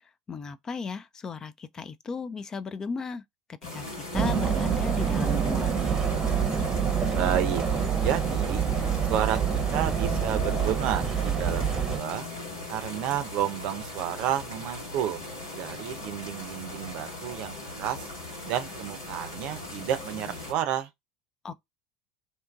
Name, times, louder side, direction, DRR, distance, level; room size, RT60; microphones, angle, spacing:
voice 1, 0.3-3.2 3.5-3.9 4.1-5.8 21.4-21.5, left 4 dB, 30° left, 0.4 m, -36 dB
sound 1, 3.6-20.5, left 2 dB, 85° left, 1.6 m, -39 dB
sound 2, 4.1-12.0, right 7 dB, 25° right, 0.7 m, -26 dB
voice 2, 7.1-7.6 7.9-8.7 9.1-9.4 9.7-12.3 12.7-15.2 15.5-18.1 18.4-20.9, right 11 dB, 60° right, 0.5 m, -31 dB
2.8 x 2.5 x 2.2 m
hypercardioid pair, 80°, 2 cm